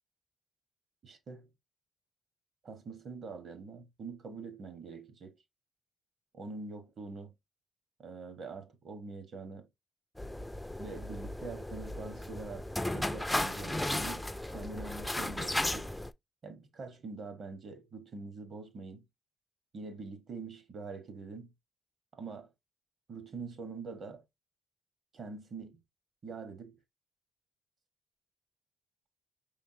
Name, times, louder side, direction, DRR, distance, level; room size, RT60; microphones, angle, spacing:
voice 1, 1.0-1.5 2.6-5.4 6.3-7.3 8.0-9.7 10.8-15.9 16.4-19.0 19.7-21.5 22.1-22.5 23.1-24.2 25.1-25.8 26.2-26.8, right 4 dB, 55° right, 1.2 m, -44 dB
sound 1, 10.2-16.1, left 1 dB, 10° left, 0.3 m, -35 dB
5.4 x 3.6 x 2.7 m
cardioid pair, 90°, 0 cm